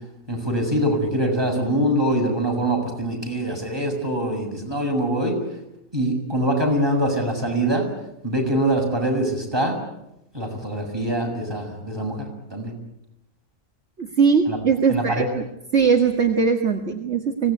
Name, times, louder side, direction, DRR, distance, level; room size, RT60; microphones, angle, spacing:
voice 1, 0.3-5.4 5.9-7.9 8.2-9.8 10.3-12.7 14.5-14.6 14.9-15.3, right 1 dB, 15° right, 1 dB, 6.9 m, -23 dB
voice 2, 14.0-15.4 15.7-17.5, right 6 dB, 45° right, 5 dB, 1.9 m, -20 dB
25.0 x 18.5 x 9.6 m, 0.84 s
omnidirectional pair, 1.8 m